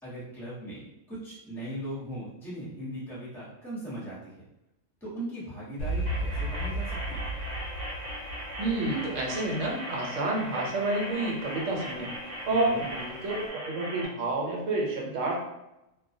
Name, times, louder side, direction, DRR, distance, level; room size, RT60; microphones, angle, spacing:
voice 1, 0.0-4.4 5.0-7.3 12.5-12.9, right 1 dB, ahead, -8 dB, 0.8 m, -39 dB
Alarm, 5.8-13.5, right 1 dB, 85° left, 1.0 m, -37 dB
sound 1, 6.1-14.1, right 1 dB, 55° right, 0.7 m, -39 dB
voice 2, 8.6-12.1 12.5-15.4, right 2 dB, 75° right, -2 dB, 1.0 m, -29 dB
2.3 x 2.1 x 2.6 m, 0.90 s
omnidirectional pair, 1.3 m